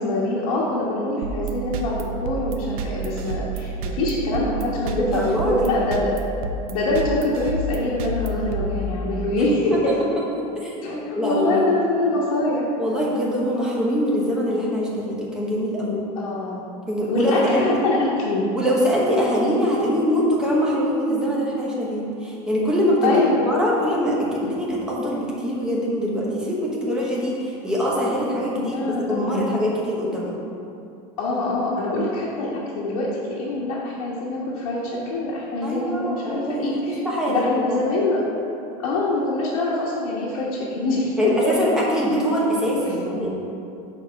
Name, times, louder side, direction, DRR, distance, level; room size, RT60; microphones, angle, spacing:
voice 1, 0.0-6.2 6.7-9.9 10.8-12.7 16.1-16.6 17.1-18.5 23.0-23.4 28.6-29.5 31.2-37.0 37.3-38.2 38.8-41.5 42.8-42.9, left 2 dB, 80° left, -7 dB, 1.3 m, -24 dB
sound 1, 1.2-9.4, right 3 dB, 80° right, 0.6 m, -30 dB
voice 2, 5.0-5.6 9.7-10.1 10.4-11.6 12.8-16.0 16.9-17.9 18.5-30.4 35.6-37.8 41.2-43.3, equal, 5° right, -5 dB, 0.9 m, -23 dB
6.3 x 4.1 x 5.8 m, 2.7 s
supercardioid pair, 175°, 18 cm